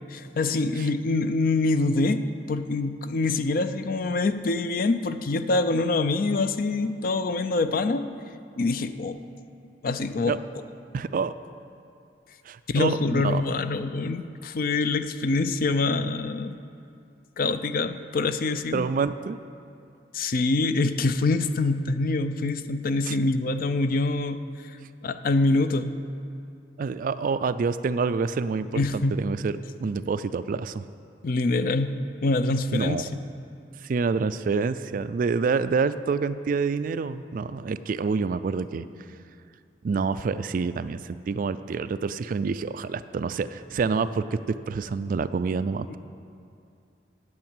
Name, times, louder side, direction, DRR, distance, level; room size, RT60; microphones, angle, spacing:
voice 1, 0.0-8.0 8.6-9.2 9.8-10.4 12.7-16.5 17.4-18.8 20.1-24.4 25.0-25.9 28.7-29.2 31.2-33.1 45.9-46.0, left 3 dB, 55° left, 11 dB, 0.5 m, -25 dB
voice 2, 10.9-11.3 12.5-13.4 18.7-19.4 23.1-23.2 26.8-30.8 32.7-33.0 33.8-38.9 39.8-46.0, right 5 dB, 50° right, 13 dB, 0.3 m, -27 dB
8.6 x 8.0 x 9.0 m, 2.5 s
head